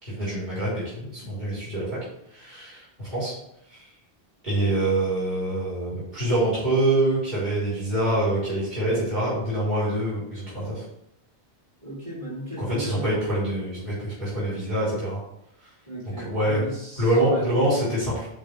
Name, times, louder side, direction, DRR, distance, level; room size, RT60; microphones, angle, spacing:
voice 1, 0.0-1.9 2.3-3.3 3.7-3.8 4.4-10.8 12.6-15.2 16.2-16.6 17.0-18.3, right 1 dB, 45° right, -9 dB, 3.5 m, -25 dB
voice 2, 11.8-13.2 15.9-17.5, equal, 25° right, -9 dB, 3.1 m, -35 dB
5.3 x 5.3 x 6.3 m, 0.81 s
omnidirectional pair, 1.1 m